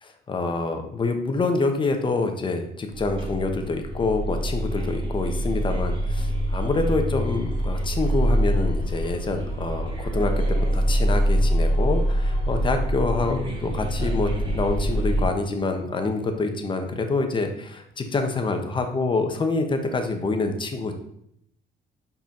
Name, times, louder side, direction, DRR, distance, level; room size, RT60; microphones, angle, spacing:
voice 1, 0.0-21.0, left 3 dB, 30° left, 5 dB, 1.1 m, -26 dB
sound 1, 2.9-15.2, equal, 30° right, 2.0 m, -25 dB
5.4 x 5.2 x 5.3 m, 0.72 s
cardioid pair, 110°, 17 cm